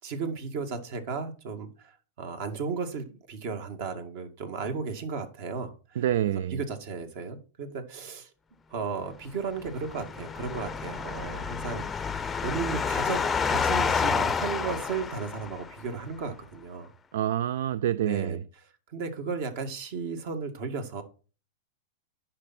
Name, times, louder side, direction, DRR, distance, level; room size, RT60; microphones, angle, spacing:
voice 1, 0.0-6.0 6.5-8.3 8.7-13.2 13.4-16.9 18.0-18.4 18.9-21.0, right 5 dB, 55° right, 2.1 m, -35 dB
voice 2, 6.0-6.6 17.1-18.4, right 11 dB, 75° right, 0.4 m, -27 dB
sound 1, 9.5-15.8, left 5 dB, 15° left, 0.6 m, -29 dB
9.9 x 6.0 x 4.3 m
supercardioid pair, 140°, 0 cm